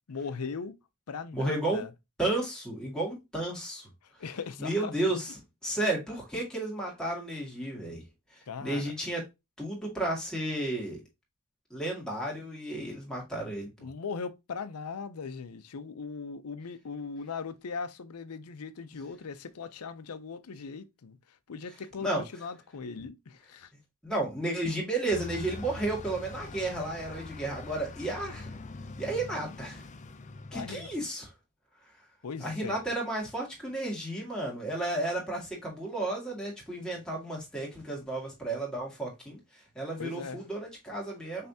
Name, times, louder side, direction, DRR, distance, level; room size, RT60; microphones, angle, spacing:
voice 1, 0.1-0.8 1.1-1.9 4.2-4.9 8.5-8.9 13.8-21.2 21.5-23.7 30.5-30.9 32.2-32.8 40.0-40.4, left 5 dB, 85° left, 0.6 m, -39 dB
voice 2, 1.3-1.9 2.2-3.9 4.6-5.3 5.6-8.0 8.6-9.2 9.6-11.0 11.7-13.7 22.0-22.2 24.0-28.6 29.0-29.8 30.5-31.3 32.4-41.5, right 2 dB, 5° left, 1.9 m, -32 dB
Bus, 25.1-31.0, left 3 dB, 35° left, 0.5 m, -43 dB
5.6 x 3.3 x 2.7 m
head